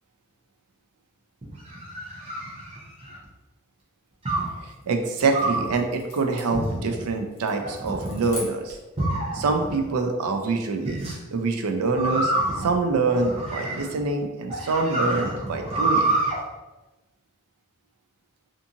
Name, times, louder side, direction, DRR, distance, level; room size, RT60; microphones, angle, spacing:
sound 1, 1.4-3.2 4.3-4.6 5.3-5.7 6.5-7.0 7.6-8.3 9.0-9.7 10.9-11.2 11.9-14.0 14.5-16.4, right 2 dB, 25° right, 0.6 m, -27 dB
sound 2, 4.3-8.9, left 2 dB, 50° left, 0.9 m, -44 dB
voice 1, 4.6-8.8 9.3-16.2, right 3 dB, 80° right, 4 dB, 0.4 m, -25 dB
2.6 x 2.5 x 2.5 m, 1.1 s
head